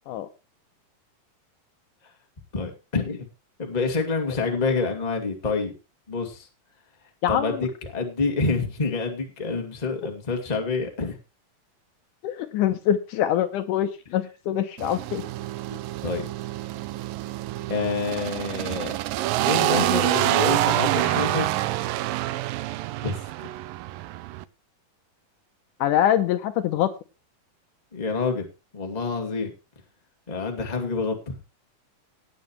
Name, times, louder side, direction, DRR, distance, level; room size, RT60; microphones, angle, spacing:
voice 1, 2.5-3.3 3.6-5.7 6.1-6.5 7.3-11.2 15.7-16.2 17.7-18.9 19.4-21.5 23.0-23.5 27.9-28.4 28.7-29.5 30.3-31.4, left 4 dB, 15° left, 3 dB, 1.6 m, -27 dB
voice 2, 7.2-7.7 12.2-15.2 25.8-26.9, left 11 dB, 75° left, 10 dB, 2.1 m, -24 dB
sound 1, 14.8-24.4, right 16 dB, 80° right, 2.3 m, -27 dB
17.5 x 9.0 x 3.1 m, 0.28 s
omnidirectional pair, 4.0 m